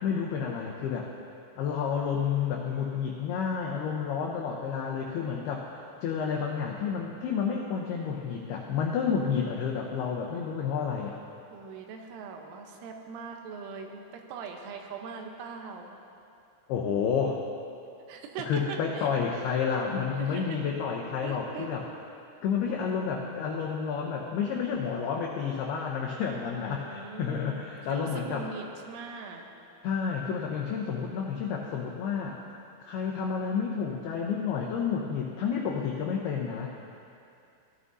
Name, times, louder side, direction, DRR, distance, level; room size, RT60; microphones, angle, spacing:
voice 1, 0.0-1.1 1.6-11.2 16.7-17.4 18.5-21.8 22.4-28.5 29.8-32.4 32.8-36.7, left 6 dB, 90° left, 0 dB, 2.2 m, -30 dB
voice 2, 11.5-16.0 18.1-19.1 19.4-19.9 20.2-20.7 21.2-22.0 26.5-29.5, right 5 dB, 85° right, 3 dB, 3.4 m, -41 dB
17.5 x 12.5 x 2.7 m, 2.6 s
omnidirectional pair, 5.5 m